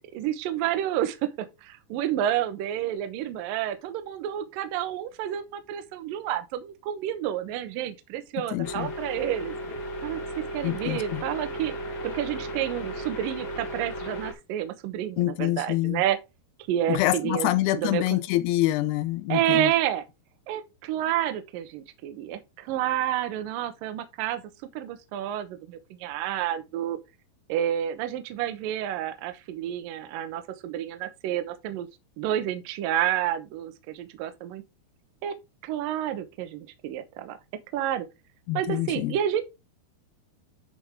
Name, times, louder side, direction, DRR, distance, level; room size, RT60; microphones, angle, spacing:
voice 1, 0.1-9.6 10.0-10.2 10.5-11.7 12.0-16.2 16.7-18.2 19.3-20.0 20.5-24.4 24.7-27.0 27.5-31.9 32.2-34.6 35.2-35.4 35.6-37.4 37.7-38.1 38.5-39.4, right 11 dB, 70° right, 2.3 m, -29 dB
voice 2, 8.5-8.9 10.6-11.2 15.2-16.0 16.9-19.7 38.5-39.2, left 16 dB, 85° left, 2.6 m, -26 dB
sound 1, 8.6-14.3, equal, 45° left, 1.7 m, -35 dB
10.5 x 4.9 x 3.5 m
omnidirectional pair, 4.8 m